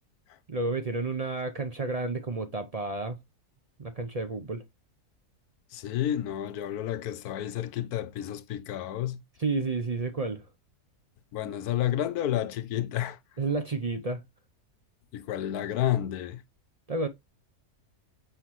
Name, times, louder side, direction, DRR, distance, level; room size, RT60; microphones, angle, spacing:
voice 1, 0.5-3.2 3.8-4.6 9.4-10.5 13.4-14.2 16.9-17.1, right 3 dB, 60° right, 0.4 m, -31 dB
voice 2, 5.7-9.2 11.3-13.2 15.1-16.4, left 11 dB, 75° left, 1.1 m, -30 dB
6.5 x 5.7 x 3.0 m
omnidirectional pair, 1.7 m